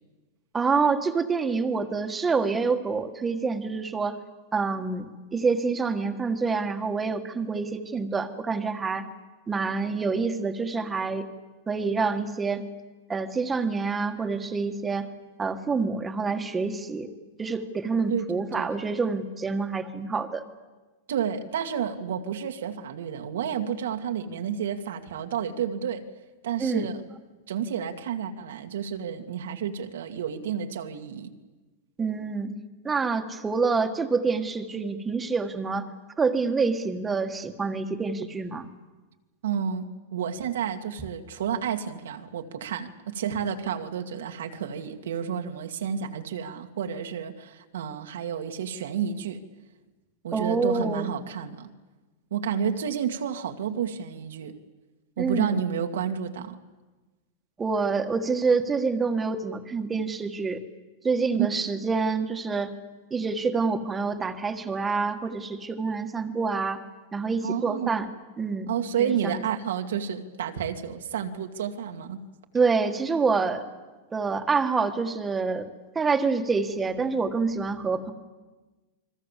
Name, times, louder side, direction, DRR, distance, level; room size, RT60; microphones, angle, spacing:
voice 1, 0.5-4.2 4.5-5.0 5.3-9.1 9.5-11.3 11.7-12.6 13.1-15.1 15.4-17.1 17.4-20.4 26.6-26.9 32.0-32.5 32.8-35.9 36.2-38.7 50.3-51.1 55.2-55.6 57.6-60.6 61.0-62.7 63.1-66.8 67.1-68.7 69.0-69.4 72.5-73.6 74.1-75.7 75.9-78.1, right 4 dB, 10° right, 7 dB, 1.6 m, -27 dB
voice 2, 18.1-18.8 21.1-26.0 26.4-27.0 27.5-31.3 39.4-49.4 50.2-51.7 52.3-54.6 55.2-56.6 61.4-61.7 67.4-68.0 68.7-72.2, right 8 dB, 85° right, 4 dB, 2.2 m, -30 dB
29.0 x 22.5 x 7.5 m, 1.2 s
supercardioid pair, 155°, 0 cm